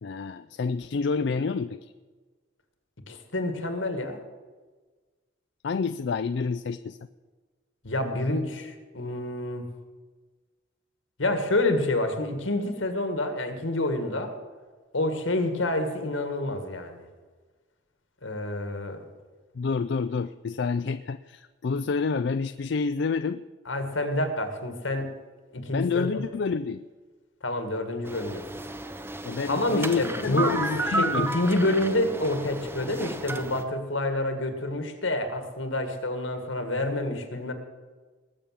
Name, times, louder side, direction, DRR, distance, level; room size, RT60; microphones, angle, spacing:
voice 1, 0.0-1.9 5.6-7.0 19.5-23.4 25.7-26.8 29.2-31.3, left 5 dB, 60° left, 11 dB, 0.4 m, -28 dB
voice 2, 3.1-4.2 7.8-9.6 11.2-14.3 14.9-17.0 18.2-19.0 23.7-25.1 25.5-26.2 27.4-28.4 29.5-30.6 30.9-37.5, left 1 dB, 75° left, 7 dB, 1.9 m, -28 dB
sound 1, 28.1-33.6, right 2 dB, 10° right, 0.6 m, -32 dB
20.5 x 7.0 x 7.5 m, 1.4 s
head